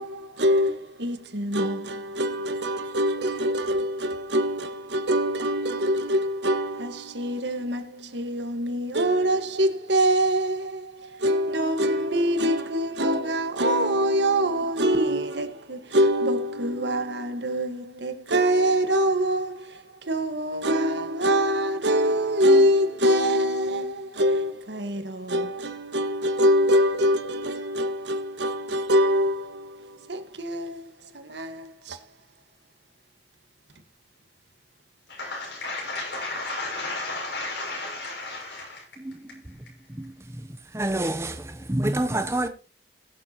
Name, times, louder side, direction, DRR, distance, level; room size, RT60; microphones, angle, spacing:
voice 1, 0.0-32.0, equal, 80° right, 1.6 m, -24 dB
voice 2, 35.1-38.8, left 2 dB, 80° left, 6.5 m, -33 dB
voice 3, 40.7-42.5, right 1 dB, 15° right, 0.7 m, -27 dB
21.5 x 7.6 x 2.9 m
head